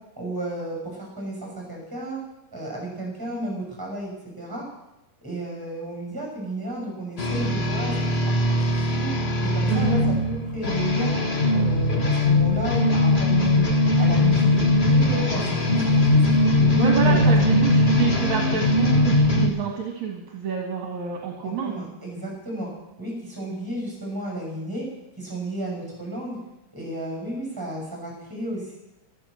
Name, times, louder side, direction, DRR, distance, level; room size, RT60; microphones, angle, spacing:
voice 1, 0.2-2.2 2.5-4.6 5.2-7.9 8.3-9.1 9.4-11.1 11.5-13.7 14.0-16.2 16.6-17.7 21.4-22.7 23.0-24.8 25.2-26.4 26.7-28.8, right 1 dB, 5° right, -1 dB, 6.3 m, -33 dB
sound 1, 7.2-19.5, left 1 dB, 70° left, 0.5 m, -20 dB
voice 2, 9.7-10.0 16.7-21.8, right 6 dB, 60° right, 1 dB, 2.8 m, -28 dB
13.5 x 13.0 x 6.5 m, 0.94 s
omnidirectional pair, 4.0 m